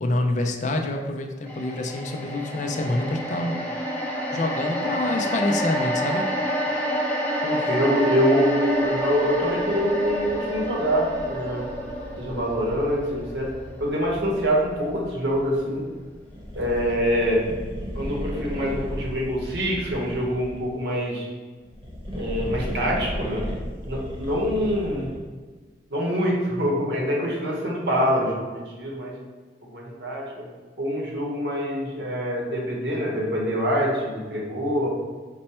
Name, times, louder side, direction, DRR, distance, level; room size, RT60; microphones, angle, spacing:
voice 1, 0.0-3.6 4.3-6.3, left 2 dB, 45° left, 3 dB, 0.4 m, -26 dB
sound 1, 1.5-15.8 16.2-16.3, equal, 10° left, 0.9 m, -29 dB
voice 2, 7.4-11.6 12.2-13.5 13.8-15.8 16.6-17.4 17.9-21.3 22.1-23.4 23.8-25.1 25.9-29.1 29.6-30.5 30.8-34.9, equal, 75° right, -2 dB, 1.1 m, -25 dB
sound 2, 16.3-20.7 21.6-25.3, equal, 30° right, 0.9 m, -34 dB
5.2 x 2.2 x 4.2 m, 1.4 s
head